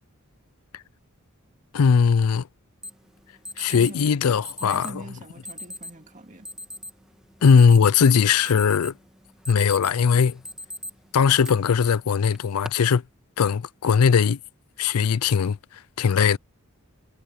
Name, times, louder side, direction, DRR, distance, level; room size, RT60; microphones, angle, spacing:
voice 1, 1.7-2.4 3.6-4.9 7.4-8.9 9.5-10.4 11.1-13.0 13.4-14.4 14.8-15.6 16.0-16.4, left 6 dB, 80° left, 0.4 m, -19 dB
Alarm, 2.8-2.9 3.4-3.9 4.4-4.9 5.4-5.9 6.4-6.9 7.3-8.1 8.4-9.0 9.3-10.0 10.4-10.9 11.4-11.5 12.3-12.7, left 1 dB, 5° right, 1.5 m, -37 dB
voice 2, 3.7-6.5, right 2 dB, 35° right, 2.2 m, -43 dB
head